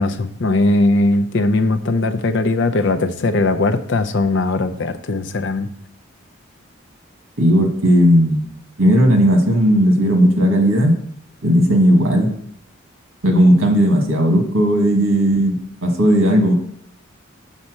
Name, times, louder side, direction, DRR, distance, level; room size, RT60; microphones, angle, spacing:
voice 1, 0.0-5.7, left 2 dB, 60° left, 9 dB, 0.6 m, -19 dB
voice 2, 7.4-8.4 8.8-10.9 11.4-12.3 13.2-16.5, equal, 85° right, 3 dB, 1.7 m, -15 dB
7.3 x 4.2 x 6.3 m, 0.67 s
head